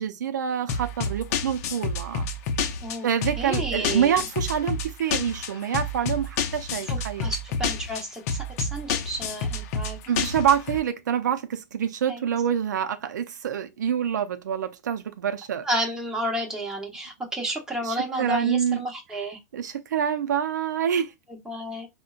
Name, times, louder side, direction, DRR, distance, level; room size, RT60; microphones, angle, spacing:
voice 1, 0.0-2.3 3.0-7.3 10.1-15.7 17.8-18.8 19.5-21.1, right 8 dB, 90° right, 0.4 m, -26 dB
sound 1, 0.7-10.8, left 4 dB, 60° left, 0.5 m, -29 dB
voice 2, 3.4-4.2 6.9-10.3 12.1-12.2 15.6-19.4 21.5-21.9, right 1 dB, 5° right, 0.9 m, -31 dB
3.7 x 2.1 x 2.3 m
hypercardioid pair, 115°, 9 cm